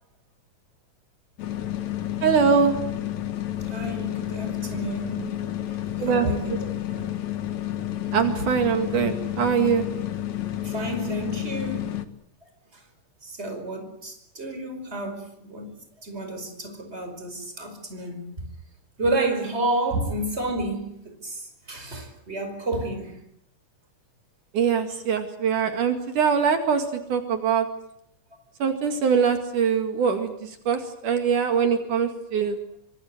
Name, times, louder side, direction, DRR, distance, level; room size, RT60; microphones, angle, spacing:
sound 1, 1.4-12.1, left 12 dB, 65° left, 2.7 m, -30 dB
voice 1, 2.2-2.8 6.0-6.3 8.1-9.9 24.5-27.7 28.6-32.6, right 6 dB, 70° right, 3.6 m, -23 dB
voice 2, 3.4-5.4 6.1-7.1 10.6-11.9 12.7-12.8 13.2-18.5 19.0-23.2, right 1 dB, 20° right, 5.3 m, -31 dB
25.5 x 25.0 x 7.9 m
omnidirectional pair, 3.7 m